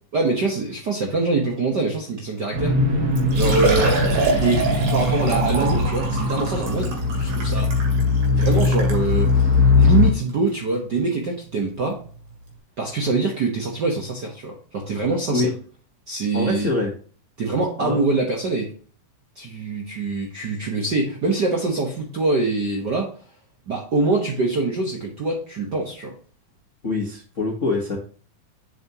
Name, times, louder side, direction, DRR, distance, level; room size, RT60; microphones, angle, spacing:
voice 1, 0.1-2.7 3.3-4.0 4.4-7.7 8.3-12.0 12.8-15.5 16.1-16.7 17.4-18.7 19.3-23.1 23.7-26.1, right 3 dB, 60° right, 0 dB, 1.1 m, -24 dB
sound 1, 2.5-10.1, left 3 dB, 40° right, 1.6 m, -20 dB
Liquid, 2.7-2.8 3.2-9.0 9.7-9.8 10.3-10.4 12.0-12.1 12.3-12.4, right 3 dB, 75° right, 3.7 m, -26 dB
voice 2, 16.3-16.9 17.8-18.0 26.8-28.0, left 3 dB, 50° left, -1 dB, 0.9 m, -24 dB
7.3 x 7.0 x 2.9 m, 0.42 s
omnidirectional pair, 3.5 m